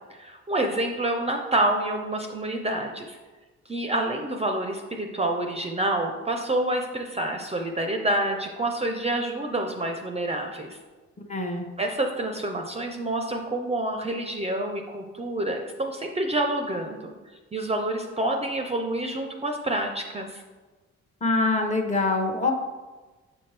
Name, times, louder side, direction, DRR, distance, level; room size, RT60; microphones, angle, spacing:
voice 1, 0.1-3.2 3.7-10.8 11.8-17.1 17.5-20.4, right 1 dB, 20° right, 3 dB, 0.5 m, -28 dB
voice 2, 11.3-11.7 21.2-22.5, left 3 dB, 25° left, 4 dB, 0.8 m, -24 dB
7.1 x 4.3 x 3.3 m, 1.3 s
cardioid pair, 90°, 30 cm